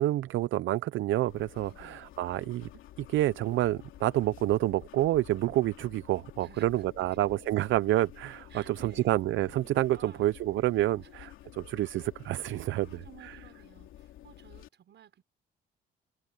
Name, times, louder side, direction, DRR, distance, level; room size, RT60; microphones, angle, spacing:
voice 1, 0.0-2.7 3.1-13.3, right 15 dB, 80° right, 0.6 m, -28 dB
sound 1, 1.3-14.7, left 13 dB, 85° left, 3.0 m, -51 dB
voice 2, 1.6-2.0 6.4-7.2 8.5-9.1 9.9-10.3 10.6-10.8 11.0-11.1 12.7-15.2, right 9 dB, 65° right, 6.5 m, -55 dB
cardioid pair, 90°, 20 cm